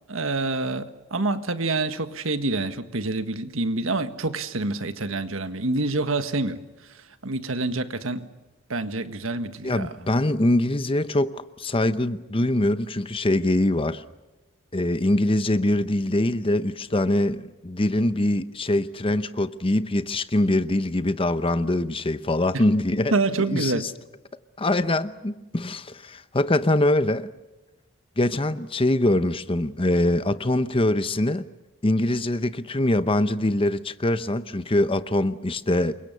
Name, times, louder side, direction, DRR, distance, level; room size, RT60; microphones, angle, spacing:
voice 1, 0.1-6.6 7.2-8.3 8.7-9.9 22.5-22.6 23.1-23.9, right 2 dB, 75° right, 1.6 m, -27 dB
voice 2, 9.6-14.0 14.7-23.1 23.5-23.9 24.6-27.3 28.2-31.4 31.8-36.0, left 1 dB, 25° left, 0.8 m, -23 dB
28.5 x 23.5 x 6.8 m
head